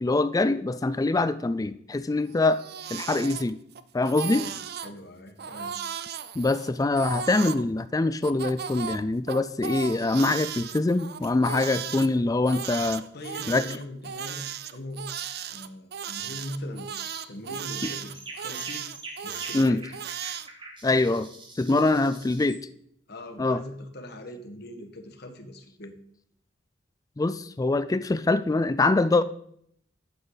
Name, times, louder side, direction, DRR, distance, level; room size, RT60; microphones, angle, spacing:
voice 1, 0.0-2.6 2.9-3.6 3.9-4.5 6.4-13.0 13.5-13.7 19.5-19.8 20.8-21.3 21.6-22.6 23.4-23.6 27.2-29.2, left 2 dB, 15° left, 14 dB, 0.3 m, -24 dB
Crying sobbing, 2.3-3.8 4.1-4.9 5.4-7.6 8.2-12.1 12.5-20.5, right 8 dB, 50° right, 0.5 m, -36 dB
voice 2, 4.2-4.6 4.8-5.7 13.1-15.0 15.5-16.9 17.3-18.8 19.2-19.8 21.8-22.2 23.1-25.9, left 1 dB, 55° left, 5 dB, 1.5 m, -40 dB
sound 1, 16.2-16.5 16.9-17.3 17.7-22.6, right 2 dB, 25° right, 1.5 m, -44 dB
11.5 x 8.6 x 4.0 m, 0.69 s
head